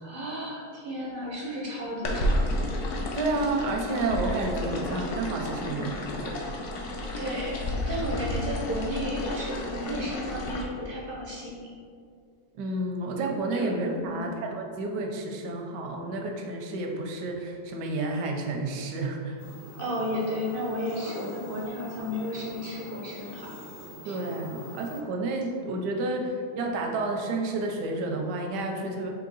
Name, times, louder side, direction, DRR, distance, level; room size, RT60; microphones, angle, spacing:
voice 1, 0.0-2.4 7.2-11.7 13.5-13.7 14.0-14.2 19.8-23.5 24.0-24.2, equal, 65° right, -4 dB, 0.5 m, -33 dB
sound 1, 2.0-10.6, left 1 dB, 60° left, 0.8 m, -31 dB
voice 2, 3.1-6.4 12.5-19.4 24.1-29.1, right 2 dB, 90° right, 2 dB, 1.3 m, -30 dB
sound 2, 19.4-25.0, left 1 dB, 30° left, 1.0 m, -43 dB
4.6 x 2.9 x 3.9 m, 2.2 s
omnidirectional pair, 1.8 m